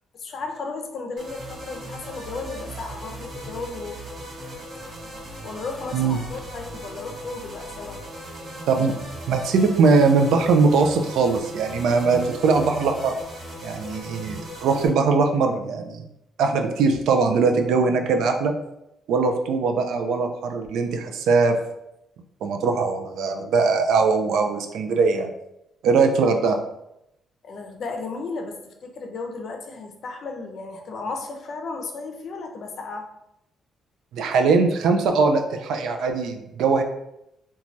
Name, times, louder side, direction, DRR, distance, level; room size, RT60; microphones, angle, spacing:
voice 1, 0.1-4.0 4.5-4.8 5.4-8.0 27.4-33.1, left 3 dB, 60° left, 3 dB, 0.5 m, -34 dB
sound 1, 1.2-14.9, equal, 60° right, 1.0 m, -38 dB
voice 2, 9.3-13.1 13.6-16.0 16.4-18.5 19.1-21.6 22.4-25.3 25.8-26.6 34.1-36.8, right 4 dB, 80° right, 5 dB, 0.3 m, -21 dB
3.1 x 2.2 x 2.5 m, 0.84 s
cardioid pair, 90°, 0 cm